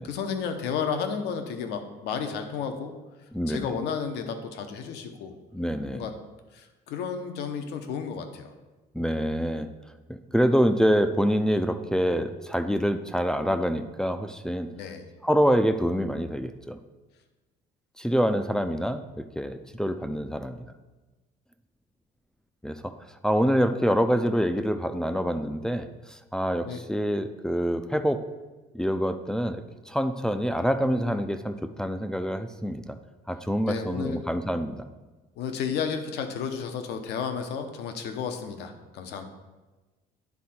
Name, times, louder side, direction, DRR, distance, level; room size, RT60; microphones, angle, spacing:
voice 1, 0.0-3.0 3.5-5.3 5.9-6.1 6.5-8.5 14.8-15.1 26.6-26.8 30.9-31.2 33.6-34.2 35.4-39.2, left 6 dB, 85° left, 6 dB, 0.9 m, -32 dB
voice 2, 3.3-3.7 5.5-6.1 8.9-9.7 10.1-14.7 15.2-16.8 18.0-20.6 22.6-22.9 23.2-28.2 28.7-33.0 33.3-34.9, equal, 5° left, 7 dB, 0.4 m, -26 dB
9.7 x 3.7 x 4.3 m, 1.2 s
cardioid pair, 110°, 17 cm